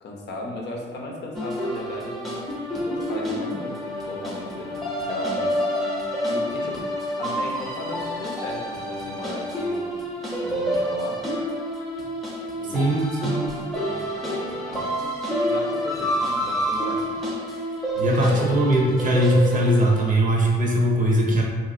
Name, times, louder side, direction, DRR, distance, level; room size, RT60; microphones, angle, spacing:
voice 1, 0.0-2.5 2.9-3.8 4.0-6.0 6.3-6.9 7.2-10.1 10.4-11.2 12.6-12.9 13.7-15.1 15.4-17.2 17.5-17.8 18.1-18.4, left 2 dB, 60° left, -1 dB, 0.7 m, -36 dB
sound 1, 1.3-20.1, equal, ahead, 0.7 m, -28 dB
voice 2, 12.7-13.6 18.0-21.4, right 1 dB, 40° right, -1 dB, 0.7 m, -20 dB
2.9 x 2.5 x 2.5 m, 1.4 s
cardioid pair, 90°, 20 cm